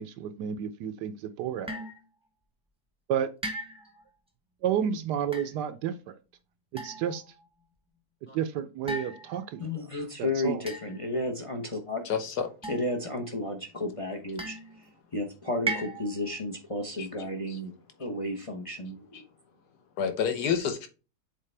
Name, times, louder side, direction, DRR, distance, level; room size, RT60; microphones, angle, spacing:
voice 1, 0.0-1.8 3.1-3.3 4.6-5.9 6.7-7.2 8.3-9.9 10.2-10.6, right 9 dB, 75° right, 1.2 m, -31 dB
sound 1, 1.7-2.0 3.4-4.0 5.2-5.5 6.8-7.3 8.9-9.6 10.7-11.2 12.6-13.2 14.4-14.9 15.7-16.3, right 2 dB, 5° right, 0.7 m, -37 dB
voice 2, 9.6-12.0 12.7-14.6 15.1-17.7 18.0-19.0, left 1 dB, 40° left, 0.4 m, -32 dB
voice 3, 12.0-12.5 17.0-17.1 17.5-17.6 19.1-19.2 20.0-20.9, left 7 dB, 65° left, 1.5 m, -29 dB
7.4 x 4.0 x 3.3 m
omnidirectional pair, 1.9 m